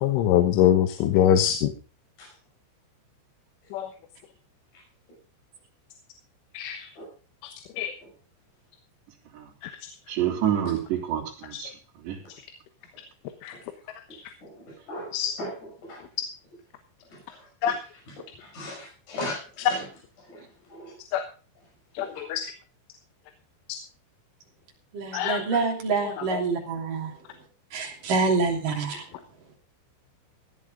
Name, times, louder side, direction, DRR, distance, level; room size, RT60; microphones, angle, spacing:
voice 1, 0.0-1.7 3.7-3.9 6.6-6.8 7.8-7.9 13.4-13.5 15.1-15.3 17.6-17.7 21.1-21.2 22.0-22.4 25.1-25.4 26.3-26.4, left 11 dB, 90° left, 7 dB, 3.7 m, -23 dB
voice 2, 10.1-11.7 12.1-12.2, right 10 dB, 65° right, 1 dB, 5.2 m, -27 dB
voice 3, 14.4-15.1 15.4-16.0 17.1-17.8 18.1-19.9 20.3-20.4 20.7-20.9 22.0-22.1 28.9-29.0, left 1 dB, 40° left, -2 dB, 7.4 m, -38 dB
voice 4, 24.9-27.1 27.7-29.0, right 4 dB, 50° right, 2 dB, 4.3 m, -26 dB
16.5 x 12.0 x 3.7 m, 0.37 s
omnidirectional pair, 5.4 m